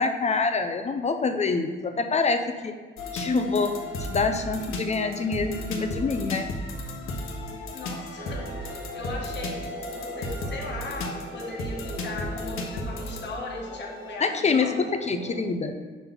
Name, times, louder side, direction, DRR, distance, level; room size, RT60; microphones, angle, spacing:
voice 1, 0.0-2.8 3.1-3.8 4.1-6.5 14.2-15.8, left 4 dB, 30° left, 7 dB, 0.5 m, -26 dB
sound 1, 3.0-14.1, left 1 dB, 80° left, 0.9 m, -34 dB
voice 2, 7.7-14.8, left 2 dB, 55° left, -2 dB, 1.2 m, -38 dB
sound 2, 8.2-15.4, right 4 dB, 55° right, 1.0 m, -43 dB
6.0 x 4.0 x 5.3 m, 1.5 s
cardioid pair, 125°, 21 cm